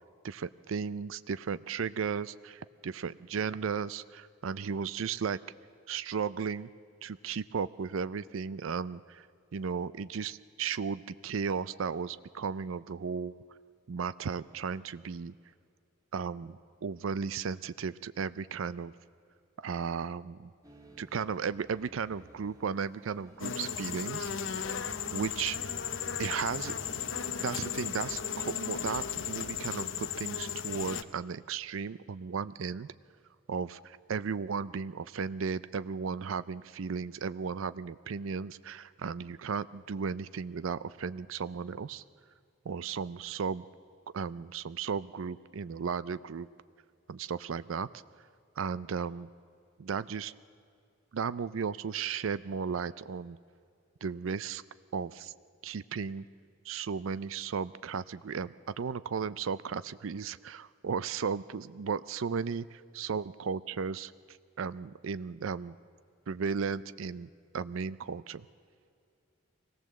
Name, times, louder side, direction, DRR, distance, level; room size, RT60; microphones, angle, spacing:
voice 1, 0.2-5.4 5.9-6.7 7.0-9.3 9.5-13.4 13.9-15.3 16.1-18.9 19.6-20.5 21.0-24.3 25.1-25.6 26.2-26.7 27.4-32.9 33.5-42.0 42.7-43.6 44.1-46.5 47.1-47.9 48.6-49.3 49.8-50.3 51.1-53.4 54.0-54.6 54.9-55.3 55.6-56.3 56.6-65.7 66.3-68.5, right 6 dB, 80° right, 16 dB, 0.5 m, -35 dB
sound 1, 20.6-27.3, equal, 15° right, 1.9 m, -55 dB
sound 2, 23.4-31.0, left 7 dB, 70° left, 0.8 m, -35 dB
24.0 x 18.0 x 7.6 m, 2.4 s
head